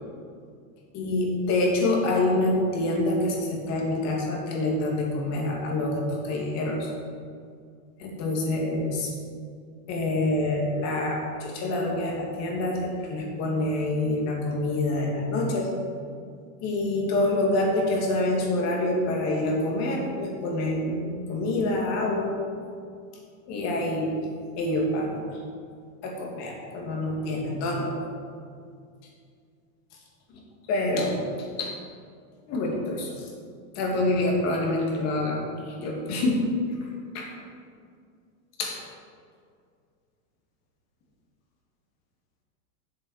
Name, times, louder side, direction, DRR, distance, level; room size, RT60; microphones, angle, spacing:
voice 1, 0.9-6.9 8.0-9.1 9.9-15.7 16.6-22.3 23.5-24.2 24.6-25.4 26.0-28.0 30.3-30.4 30.7-31.1 31.6-31.7 32.5-33.1 33.8-35.4 35.8-36.4 37.1-37.3 38.6-38.8, left 2 dB, 40° left, -1 dB, 2.4 m, -26 dB
8.5 x 7.4 x 6.5 m, 2.2 s
supercardioid pair, 155°, 41 cm